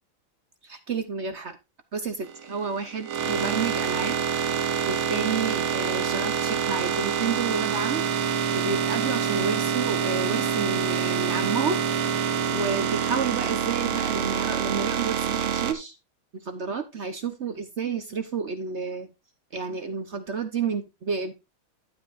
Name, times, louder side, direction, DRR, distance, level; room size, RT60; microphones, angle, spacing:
voice 1, 0.6-1.6 1.9-4.2 4.9-8.0 8.5-11.8 12.5-15.9 16.4-19.1 19.5-21.3, right 5 dB, 50° right, 9 dB, 0.8 m, -30 dB
sound 1, 2.2-15.7, right 7 dB, 85° right, 1.9 m, -26 dB
12.0 x 8.5 x 2.5 m, 0.24 s
omnidirectional pair, 2.3 m